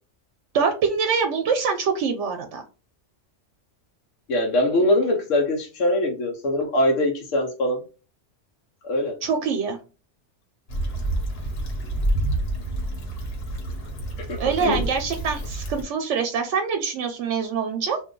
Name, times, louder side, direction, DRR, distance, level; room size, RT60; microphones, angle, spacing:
voice 1, 0.5-2.6 9.2-9.8 14.4-18.0, right 5 dB, 80° right, 0.9 m, -24 dB
voice 2, 4.3-7.8 8.8-9.2 14.2-14.8, left 1 dB, 90° left, 1.1 m, -23 dB
Stream / Traffic noise roadway noise / Trickle dribble, 10.7-15.8, right 1 dB, 55° left, 1.1 m, -28 dB
2.5 x 2.3 x 3.7 m
omnidirectional pair, 1.3 m